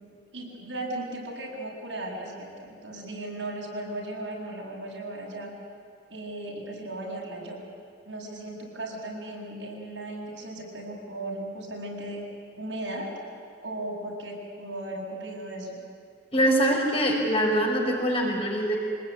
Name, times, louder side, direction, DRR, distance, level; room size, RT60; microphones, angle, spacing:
voice 1, 0.3-5.5 6.1-7.6 8.1-12.2 12.6-13.1 13.6-15.7, right 1 dB, 80° right, -2 dB, 7.7 m, -36 dB
voice 2, 16.3-18.8, equal, 30° left, -1 dB, 5.6 m, -23 dB
25.5 x 20.0 x 9.7 m, 2.3 s
head